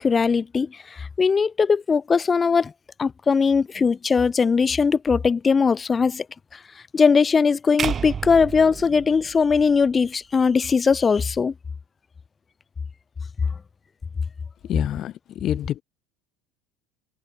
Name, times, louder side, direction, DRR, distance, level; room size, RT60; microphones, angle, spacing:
voice 1, 0.0-2.7 3.0-6.3 6.9-11.5, left 5 dB, 25° left, 3.5 m, -20 dB
sound 1, 7.8-10.0, right 7 dB, 35° right, 4.3 m, -31 dB
voice 2, 14.6-15.8, left 12 dB, 45° left, 4.8 m, -27 dB
hypercardioid pair, 70°, 0 cm